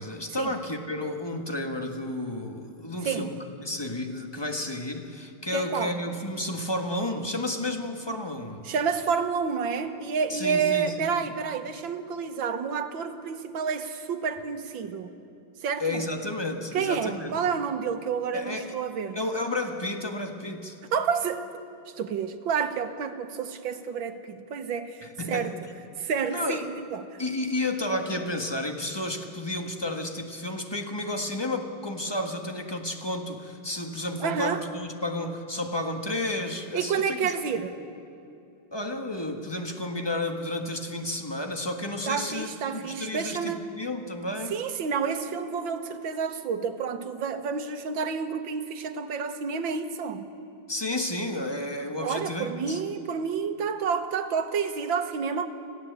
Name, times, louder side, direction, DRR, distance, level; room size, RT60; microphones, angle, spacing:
voice 1, 0.0-8.7 10.3-11.1 15.8-17.3 18.3-18.7 19.1-20.8 25.0-25.5 26.3-26.7 27.2-37.3 38.7-44.5 50.7-52.8, left 1 dB, 15° left, 4 dB, 1.4 m, -32 dB
voice 2, 3.0-3.4 5.5-6.0 8.6-15.1 15.6-16.0 16.7-19.2 20.9-21.7 22.0-25.5 26.0-27.2 34.2-34.6 36.7-37.8 42.1-43.7 44.5-50.3 52.0-55.5, right 6 dB, 85° right, 8 dB, 1.9 m, -29 dB
25.5 x 16.0 x 8.1 m, 2.7 s
omnidirectional pair, 2.1 m